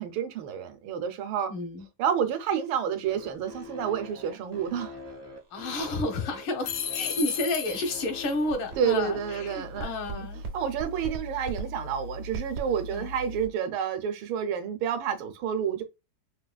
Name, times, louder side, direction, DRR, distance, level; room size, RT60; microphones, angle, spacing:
voice 1, 0.0-1.5 2.0-4.9 8.8-10.3 10.5-15.8, right 8 dB, 85° right, 1.4 m, -29 dB
voice 2, 1.5-1.9 5.5-10.4 12.9-13.1, left 2 dB, 85° left, 1.7 m, -31 dB
sound 1, 3.0-9.8, left 3 dB, 35° right, 0.4 m, -44 dB
sound 2, 6.6-8.3, left 8 dB, 70° left, 0.9 m, -33 dB
sound 3, 7.5-13.5, right 2 dB, 60° right, 1.1 m, -39 dB
4.6 x 2.3 x 2.2 m
omnidirectional pair, 2.2 m